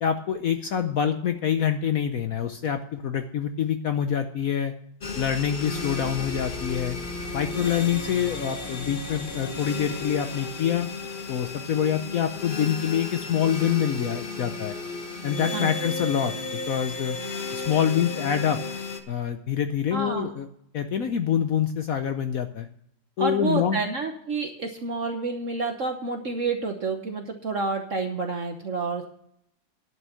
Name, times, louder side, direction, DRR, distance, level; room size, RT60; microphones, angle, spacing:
voice 1, 0.0-4.7 5.2-7.0 7.3-10.9 11.3-14.8 15.2-16.3 16.7-17.2 17.5-18.6 19.1-20.5 20.7-22.7 23.2-23.8, left 8 dB, 60° left, 8 dB, 0.9 m, -26 dB
sound 1, 5.0-19.0, left 3 dB, 35° left, 1.0 m, -34 dB
voice 2, 19.9-20.3 23.2-29.1, right 3 dB, 50° right, 4 dB, 1.2 m, -29 dB
11.0 x 6.3 x 8.2 m, 0.70 s
omnidirectional pair, 2.0 m